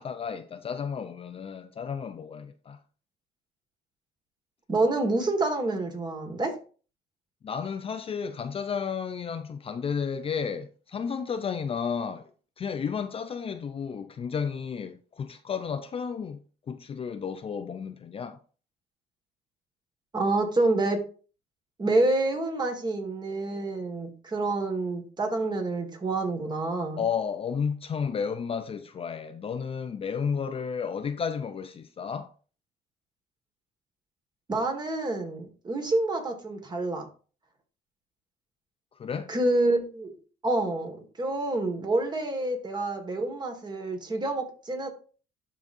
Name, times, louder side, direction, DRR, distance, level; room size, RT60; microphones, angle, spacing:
voice 1, 0.0-2.8 7.4-12.3 12.6-16.4 16.7-18.4 27.0-32.3 38.9-39.3, left 6 dB, 35° left, 0.5 m, -32 dB
voice 2, 4.7-6.6 20.1-21.0 21.8-27.0 34.5-37.1 39.3-40.1 40.4-44.9, right 2 dB, 25° right, 1.8 m, -27 dB
12.0 x 4.0 x 2.6 m
cardioid pair, 110°, 17 cm